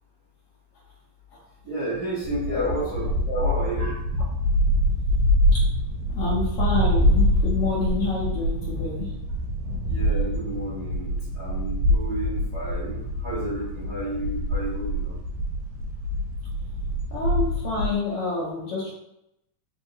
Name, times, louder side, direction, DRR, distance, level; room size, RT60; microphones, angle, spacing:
voice 1, 1.6-3.1 3.4-3.9 9.8-15.1, right 1 dB, 60° right, -9 dB, 0.9 m, -31 dB
sound 1, 2.2-18.0, equal, 90° right, 2.1 m, -25 dB
voice 2, 2.4-2.9 3.3-3.8 5.5-5.6 6.1-9.1 17.1-18.9, left 3 dB, 70° left, -6 dB, 1.4 m, -28 dB
4.7 x 2.8 x 2.7 m, 0.83 s
omnidirectional pair, 3.5 m